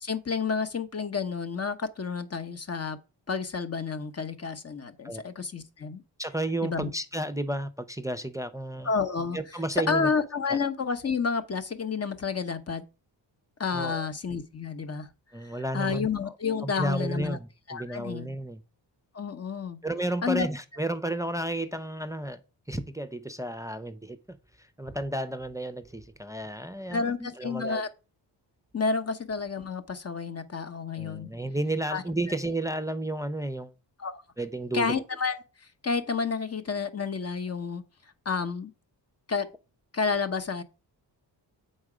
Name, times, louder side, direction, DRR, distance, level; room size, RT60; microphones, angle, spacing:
voice 1, 0.0-3.0 3.3-6.0 6.6-6.9 8.8-9.4 9.9-12.8 13.6-15.1 15.7-17.4 17.7-18.3 19.1-19.8 20.2-20.5 26.9-27.9 28.7-31.3 31.9-32.0 34.0-34.2 34.7-35.4 35.8-37.8 38.2-38.7 39.3-39.5 39.9-40.6, left 5 dB, 35° left, 0.9 m, -30 dB
voice 2, 6.2-8.9 9.3-10.1 10.5-10.6 13.7-14.1 15.3-16.3 16.6-18.6 19.8-22.4 22.7-24.4 24.8-27.8 31.0-33.7 34.4-34.9, right 1 dB, 10° right, 0.5 m, -32 dB
7.8 x 4.3 x 4.9 m
cardioid pair, 95°, 43 cm